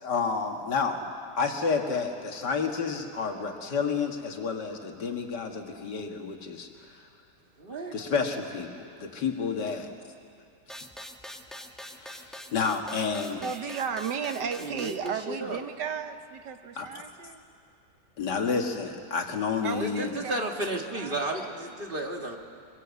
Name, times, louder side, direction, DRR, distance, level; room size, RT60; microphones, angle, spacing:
voice 1, 0.0-1.0 1.4-6.7 7.9-9.9 11.9-13.4 16.8-16.9 18.2-20.1, left 5 dB, 75° left, 3 dB, 2.4 m, -30 dB
voice 2, 7.6-8.0 14.6-15.6 19.8-22.4, right 1 dB, 30° right, 2 dB, 1.9 m, -33 dB
sound 1, 10.7-15.1, equal, ahead, 1.0 m, -44 dB
voice 3, 13.4-17.4 19.6-20.7 20.9-21.6, right 7 dB, 80° right, 8 dB, 1.7 m, -35 dB
24.0 x 22.0 x 8.3 m, 2.4 s
omnidirectional pair, 1.9 m